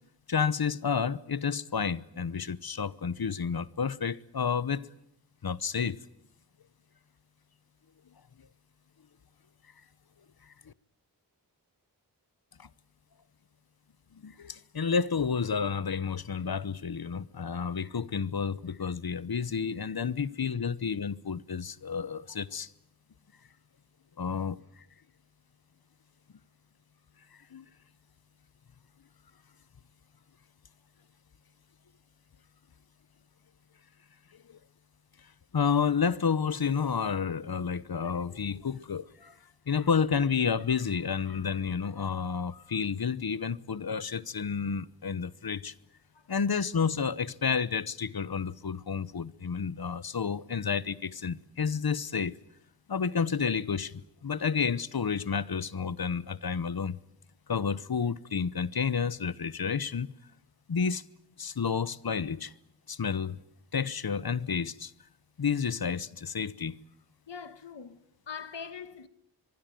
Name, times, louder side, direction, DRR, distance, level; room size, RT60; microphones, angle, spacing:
voice 1, 0.3-4.9 5.4-6.0 12.6-12.7 14.2-22.7 24.2-24.6 27.5-27.6 35.5-39.1 39.7-45.7 46.3-52.4 52.9-57.0 57.5-60.1 60.7-61.0 61.4-62.5 62.9-63.4 63.7-64.9 65.4-66.8, left 6 dB, 60° left, 1.0 m, -30 dB
voice 2, 38.0-38.7 39.2-39.6 43.4-43.5 46.1-46.4 49.1-49.2 54.3-54.4 67.3-69.1, left 6 dB, 90° left, 1.5 m, -45 dB
24.5 x 23.0 x 9.2 m
wide cardioid pair, 80°, 42 cm